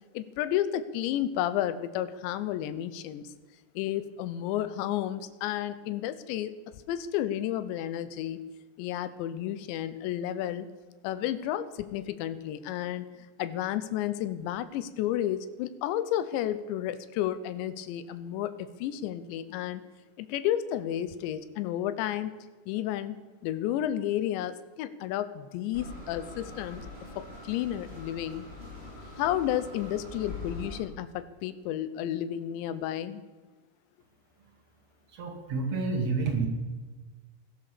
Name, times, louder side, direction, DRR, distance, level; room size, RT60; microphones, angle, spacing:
voice 1, 0.1-3.3 3.8-6.6 6.9-8.4 8.8-10.7 11.0-13.1 13.4-19.8 20.2-22.3 22.7-23.2 23.4-26.9 27.2-28.5 29.2-33.2, left 12 dB, 80° left, 13 dB, 3.1 m, -32 dB
sound 1, 25.7-30.8, left 2 dB, 15° left, 3.5 m, -43 dB
voice 2, 35.1-36.5, right 4 dB, 45° right, 2 dB, 2.9 m, -29 dB
16.5 x 12.5 x 6.9 m, 1.3 s
omnidirectional pair, 5.2 m